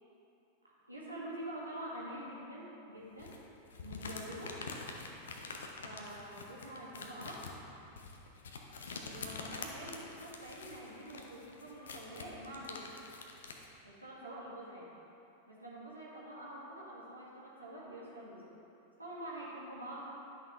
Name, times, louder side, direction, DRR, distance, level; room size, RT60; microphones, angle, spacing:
voice 1, 0.9-3.4 3.8-4.6 5.8-7.5 9.0-12.9 13.8-14.9 15.5-18.5 19.0-20.1, right 1 dB, 85° right, -6 dB, 1.7 m, -46 dB
sound 1, 3.2-13.7, left 4 dB, 65° left, 0.7 m, -46 dB
10.5 x 6.0 x 3.5 m, 3.0 s
figure-of-eight pair, 90°, 0 cm